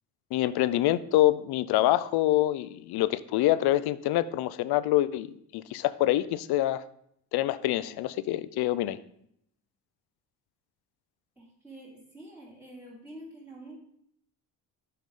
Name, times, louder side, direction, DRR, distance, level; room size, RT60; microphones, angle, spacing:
voice 1, 0.3-6.8 7.3-9.0, left 14 dB, 75° left, 16 dB, 0.5 m, -26 dB
voice 2, 11.4-13.8, right 1 dB, 5° right, -10 dB, 2.8 m, -47 dB
7.4 x 5.7 x 3.7 m, 0.71 s
cardioid pair, 100°, 39 cm